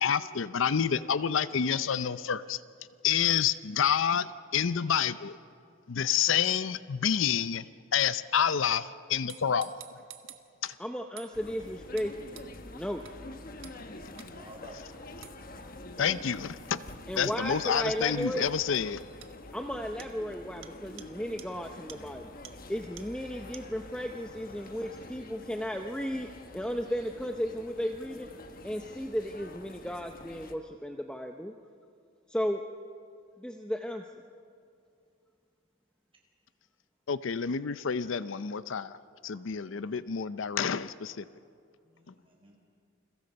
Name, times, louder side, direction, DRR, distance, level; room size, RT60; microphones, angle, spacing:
voice 1, 0.0-2.6 3.0-5.4 5.9-7.6 7.9-9.7 10.6-10.7 16.0-16.8 17.2-19.0 37.1-39.0 39.2-41.2, left 7 dB, 65° left, 15 dB, 0.5 m, -28 dB
voice 2, 0.7-1.5 14.3-14.8 15.7-16.1 39.6-39.9 41.8-42.6, right 1 dB, 25° right, 0 dB, 4.4 m, -52 dB
sound 1, 9.3-10.7 11.2-11.3 12.0-12.1 12.4-12.5 13.1-13.2 13.6-13.8 14.2-14.3 15.2-15.4 17.2-17.4 18.2-18.3 18.7-18.8 19.2-19.3 20.0-20.1 20.6-20.7 21.0-21.1 21.4-21.5 21.9-22.0 22.4-22.5 23.0-23.1 23.5-23.6, right 12 dB, 70° right, 1.3 m, -48 dB
voice 3, 10.8-12.4 12.7-13.1 17.1-18.4 19.5-22.3 22.7-28.3 28.6-31.5 32.3-32.6 33.4-34.0, equal, 5° left, 4 dB, 0.7 m, -34 dB
sound 2, 11.3-30.5, left 2 dB, 45° left, 1.2 m, -47 dB
29.0 x 22.5 x 5.3 m, 2.4 s
head